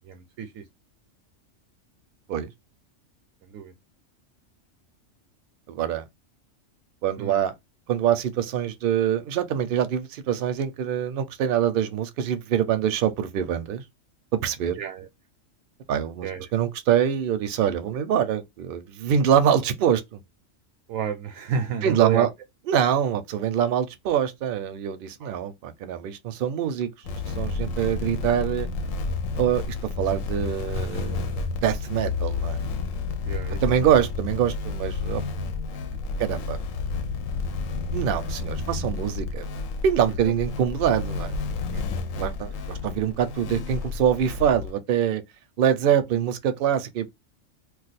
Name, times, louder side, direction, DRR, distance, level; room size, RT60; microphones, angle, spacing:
voice 1, 0.0-0.6 3.4-3.7 7.2-7.4 14.8-15.1 16.2-16.5 20.9-22.3 25.2-25.3 33.2-33.9 35.9-36.2 40.2-40.3 41.7-41.8, right 7 dB, 85° right, 1.0 m, -31 dB
voice 2, 5.7-6.0 7.0-7.5 7.9-13.8 14.3-14.8 15.9-20.2 21.8-22.3 22.7-28.7 29.4-32.6 33.6-35.2 36.2-36.6 37.9-39.5 39.8-41.4 42.1-45.2 45.6-47.1, right 9 dB, 60° right, 0.6 m, -24 dB
sound 1, 27.0-44.7, left 4 dB, 90° left, 1.0 m, -30 dB
2.4 x 2.3 x 4.0 m
omnidirectional pair, 1.3 m